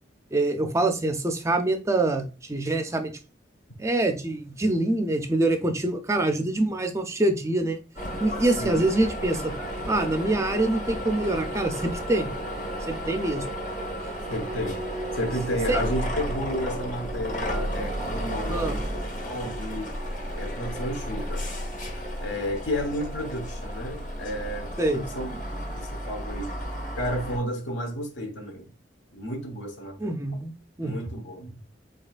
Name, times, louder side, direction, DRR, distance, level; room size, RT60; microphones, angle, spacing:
voice 1, 0.3-3.1 3.8-7.8 8.2-9.5 9.9-12.3 12.9-13.4 15.7-15.8 18.5-18.7 24.8-25.0 30.0-30.5 30.8-30.9, right 2 dB, 15° right, 0.5 m, -25 dB
sound 1, 8.0-27.4, equal, 45° left, 1.5 m, -33 dB
voice 2, 14.3-14.8 15.1-18.8 19.2-19.9 20.3-21.4 22.2-25.3 25.7-26.5 26.9-28.7 29.1-30.2 30.8-31.6, equal, 70° left, 1.3 m, -32 dB
5.2 x 3.9 x 2.4 m
head